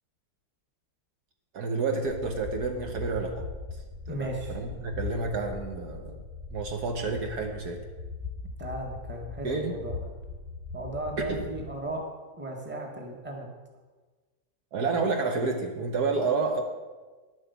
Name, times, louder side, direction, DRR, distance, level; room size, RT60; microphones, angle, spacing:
voice 1, 1.5-3.5 4.1-6.2 6.5-7.8 9.4-9.8 11.2-11.5 14.7-16.6, right 4 dB, 65° right, 3 dB, 1.5 m, -30 dB
sound 1, 2.1-11.8, left 4 dB, 35° right, 2.5 m, -40 dB
voice 2, 4.1-4.8 8.6-10.1 10.7-12.0 12.4-13.5, right 1 dB, 5° right, 1 dB, 1.4 m, -36 dB
10.0 x 8.0 x 7.0 m, 1.3 s
omnidirectional pair, 1.9 m